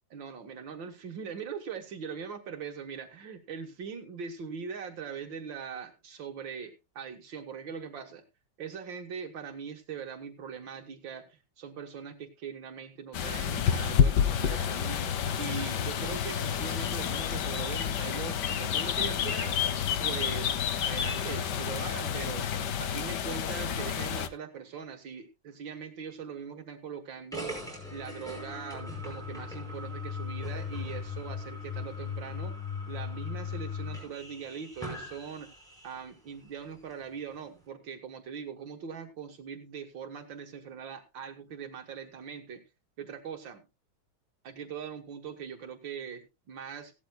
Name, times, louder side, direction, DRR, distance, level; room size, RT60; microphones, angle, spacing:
voice 1, 0.1-8.2 8.6-15.0 15.4-19.6 20.0-22.5 22.8-32.6 32.9-35.5 35.8-42.6 43.0-43.6 44.4-46.9, right 7 dB, 75° right, 6 dB, 2.0 m, -41 dB
sound 1, 13.1-24.3, left 8 dB, 65° left, 1.5 m, -29 dB
sound 2, 27.3-36.1, left 5 dB, ahead, 5.5 m, -38 dB
16.5 x 12.5 x 2.3 m, 0.26 s
omnidirectional pair, 2.1 m